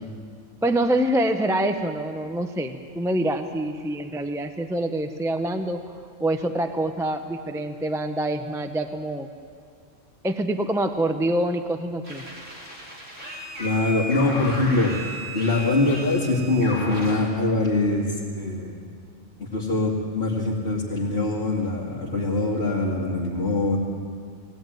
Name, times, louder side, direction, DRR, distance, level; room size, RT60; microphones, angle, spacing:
voice 1, 0.6-5.8 6.2-9.3 10.2-12.2, right 1 dB, 5° right, 7 dB, 0.7 m, -25 dB
sound 1, 12.0-17.2, equal, 60° right, 5.1 m, -35 dB
voice 2, 13.6-14.9 15.3-18.8 19.5-23.8, left 2 dB, 45° left, -5 dB, 2.6 m, -23 dB
20.5 x 16.5 x 9.3 m, 2.2 s
omnidirectional pair, 1.4 m